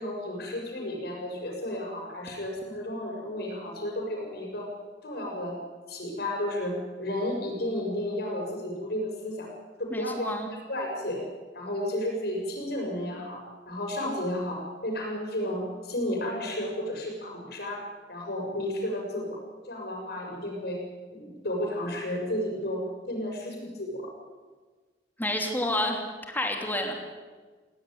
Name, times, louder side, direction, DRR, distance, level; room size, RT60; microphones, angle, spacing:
voice 1, 0.0-4.7 5.0-5.6 5.9-9.5 9.8-10.3 10.7-11.2 11.5-19.4 19.6-20.8 21.1-24.1, left 1 dB, 60° left, 0 dB, 7.1 m, -32 dB
voice 2, 9.9-10.5 25.2-26.9, left 1 dB, 10° left, 2 dB, 3.2 m, -29 dB
18.5 x 17.0 x 9.7 m, 1.4 s
head